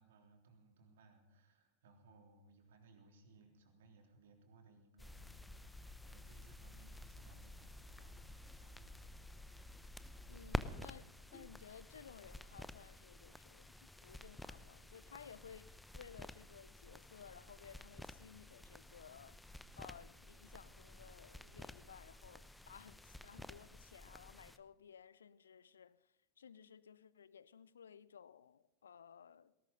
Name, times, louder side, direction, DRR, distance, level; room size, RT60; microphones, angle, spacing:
voice 1, 0.0-9.8 11.2-11.3, right 2 dB, 60° right, 3.5 m, -65 dB
sound 1, 5.0-24.6, left 1 dB, 5° left, 0.8 m, -51 dB
voice 2, 10.3-19.4 19.8-26.0 26.4-29.5, left 7 dB, 70° left, 0.7 m, -57 dB
20.0 x 18.0 x 4.0 m
figure-of-eight pair, 90°, 0 cm